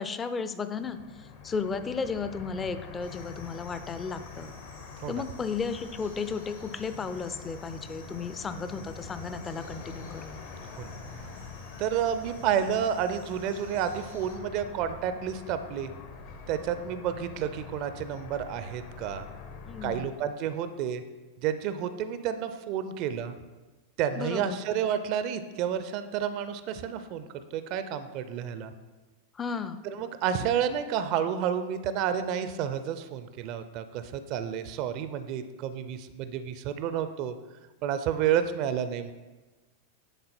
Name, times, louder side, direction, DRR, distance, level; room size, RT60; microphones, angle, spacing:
voice 1, 0.0-4.5 5.1-10.4 19.7-20.1 24.2-24.6 29.3-29.8, left 5 dB, 20° left, 11 dB, 0.5 m, -34 dB
sound 1, 0.8-20.1, left 5 dB, 50° left, 0.9 m, -45 dB
sound 2, 3.0-14.3, left 1 dB, 90° left, 2.4 m, -54 dB
voice 2, 11.8-15.9 16.5-19.3 19.8-21.0 21.4-23.4 24.0-28.7 29.9-37.4 37.8-39.1, right 9 dB, 40° right, 10 dB, 0.5 m, -30 dB
10.0 x 3.9 x 4.3 m, 1.2 s
figure-of-eight pair, 90°, 0 cm